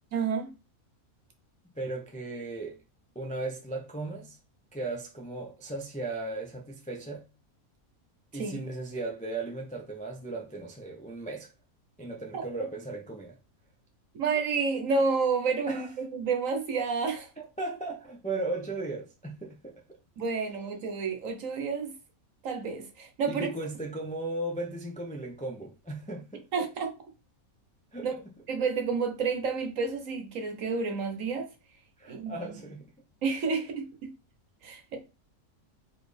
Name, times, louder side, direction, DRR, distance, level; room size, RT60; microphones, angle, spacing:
voice 1, 0.1-0.5 8.3-8.6 12.3-12.4 14.1-17.3 20.2-21.9 22.4-23.5 26.5-26.9 28.0-28.1 28.5-31.5 32.1-32.5 33.2-34.1 34.6-35.0, right 5 dB, 65° right, 1.3 m, -30 dB
voice 2, 1.8-2.8 3.1-4.4 4.7-7.3 8.3-11.5 12.0-13.4 15.7-15.9 17.6-19.7 23.3-26.4 27.9-28.1 32.0-33.0, right 2 dB, 10° left, 0.4 m, -36 dB
4.2 x 3.3 x 3.3 m
omnidirectional pair, 1.5 m